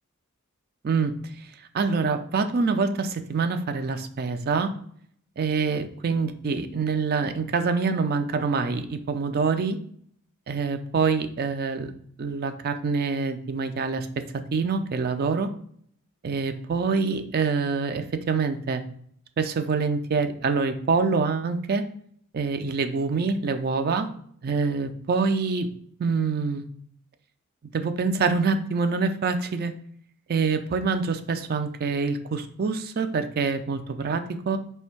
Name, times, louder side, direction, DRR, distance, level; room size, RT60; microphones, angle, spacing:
voice 1, 0.8-1.5 1.7-4.7 5.4-9.8 10.5-11.9 12.2-14.1 14.5-15.5 16.2-18.8 19.4-21.9 22.3-24.1 24.4-25.7 26.0-26.6 27.7-29.7 30.3-34.6, right 4 dB, 45° right, 8 dB, 0.4 m, -25 dB
3.3 x 2.6 x 4.4 m, 0.62 s
head